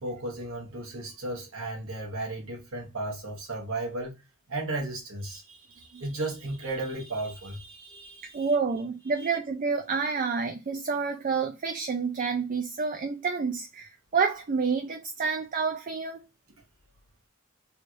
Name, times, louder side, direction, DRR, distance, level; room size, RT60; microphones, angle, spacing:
voice 1, 0.0-4.1 4.5-8.5 9.2-9.3, right 2 dB, 80° right, 1.4 m, -35 dB
voice 2, 8.3-16.2, right 5 dB, 40° right, 0.4 m, -29 dB
3.3 x 2.6 x 4.5 m
head